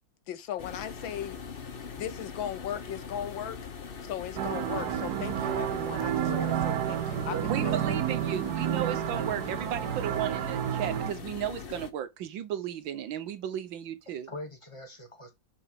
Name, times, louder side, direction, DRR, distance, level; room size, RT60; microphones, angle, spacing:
voice 1, 0.3-1.4 2.0-3.6 4.0-8.0, left 10 dB, 80° left, 1.7 m, -37 dB
sound 1, 0.6-11.9, left 5 dB, 40° left, 0.8 m, -42 dB
sound 2, 4.4-11.1, right 11 dB, 65° right, 1.1 m, -30 dB
voice 2, 6.0-6.6 7.2-7.9 14.3-15.3, right 1 dB, 15° left, 2.4 m, -40 dB
voice 3, 7.5-14.3, right 10 dB, 80° right, 1.7 m, -34 dB
7.2 x 5.6 x 3.6 m
omnidirectional pair, 2.1 m